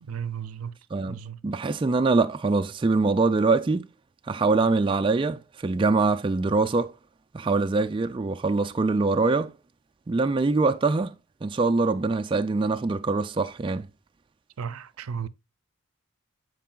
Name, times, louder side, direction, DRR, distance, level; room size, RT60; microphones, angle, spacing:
voice 1, 0.0-0.7 1.1-1.4 14.6-15.3, right 7 dB, 80° right, 0.5 m, -34 dB
voice 2, 1.4-3.9 4.3-6.9 7.3-9.5 10.1-11.1 11.4-13.9, right 3 dB, 25° right, 0.3 m, -23 dB
13.5 x 4.6 x 2.3 m
head